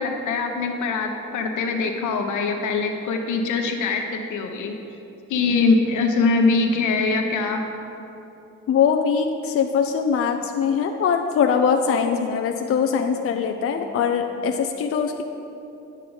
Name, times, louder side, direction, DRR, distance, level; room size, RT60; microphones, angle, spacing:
voice 1, 0.0-4.7 5.3-7.6, left 4 dB, 80° left, 3 dB, 1.0 m, -22 dB
voice 2, 8.7-15.2, left 6 dB, 50° left, 5 dB, 0.5 m, -22 dB
9.2 x 7.4 x 4.0 m, 2.9 s
cardioid pair, 90°, 30 cm